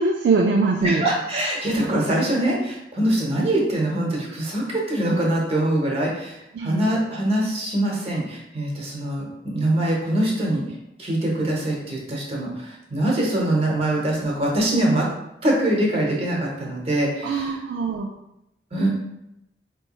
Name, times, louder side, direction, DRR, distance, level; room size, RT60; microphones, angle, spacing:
voice 1, 0.0-1.0 6.5-6.9 17.2-18.1, right 4 dB, 65° right, 1 dB, 0.3 m, -22 dB
voice 2, 0.8-10.6 11.0-15.1 15.4-17.6 18.7-18.9, right 1 dB, 35° right, -2 dB, 0.9 m, -23 dB
4.5 x 3.0 x 2.3 m, 0.85 s
head